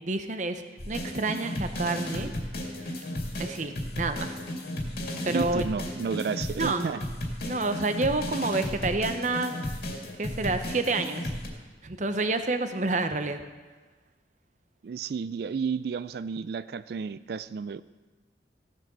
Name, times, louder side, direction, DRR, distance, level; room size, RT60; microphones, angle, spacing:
voice 1, 0.0-2.3 3.4-4.4 5.2-5.6 6.6-6.9 7.4-9.6 9.9-11.3 11.8-13.4, right 3 dB, 40° right, 8 dB, 0.8 m, -29 dB
sound 1, 0.8-11.5, left 1 dB, 55° left, 2.3 m, -34 dB
voice 2, 5.3-7.0 14.8-17.8, right 6 dB, 55° right, 15 dB, 0.3 m, -32 dB
15.5 x 7.6 x 6.1 m, 1.3 s
head